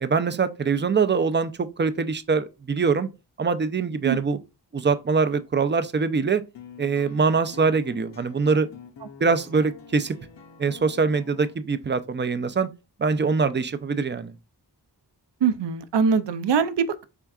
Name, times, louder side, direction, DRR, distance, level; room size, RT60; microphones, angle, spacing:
voice 1, 0.0-3.1 3.4-4.4 4.7-6.4 6.8-8.7 9.2-10.2 10.6-12.7 13.0-14.3, right 5 dB, 30° right, 0.4 m, -23 dB
sound 1, 6.5-11.6, left 6 dB, 85° left, 0.6 m, -46 dB
voice 2, 15.4-17.0, right 6 dB, 80° right, 0.5 m, -22 dB
4.4 x 3.5 x 2.3 m
wide cardioid pair, 55°, 41 cm